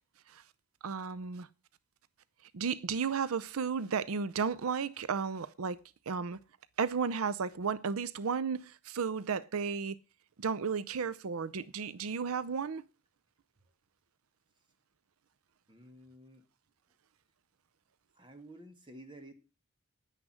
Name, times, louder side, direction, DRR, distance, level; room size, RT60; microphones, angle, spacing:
voice 1, 0.8-1.5 2.5-5.8 6.1-6.4 6.8-10.0 10.4-12.8, right 6 dB, 85° right, 0.6 m, -33 dB
voice 2, 15.7-16.5 18.1-19.3, right 1 dB, 20° right, 1.9 m, -52 dB
10.0 x 9.9 x 6.2 m
head